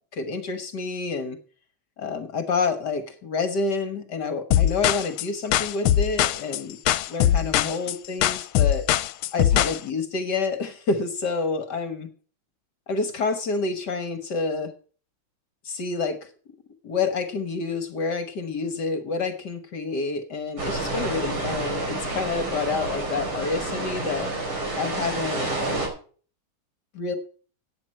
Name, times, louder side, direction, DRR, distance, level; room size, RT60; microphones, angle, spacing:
voice 1, 0.1-1.4 2.0-6.8 7.1-8.8 9.3-12.1 12.9-14.7 15.6-16.3 16.8-24.3 24.8-25.5 26.9-27.2, left 4 dB, 55° left, 9 dB, 1.7 m, -28 dB
sound 1, 4.5-9.8, left 12 dB, 80° left, 1.5 m, -21 dB
sound 2, 20.6-25.9, right 2 dB, 75° right, 5.1 m, -29 dB
14.0 x 9.3 x 4.3 m, 0.41 s
omnidirectional pair, 2.3 m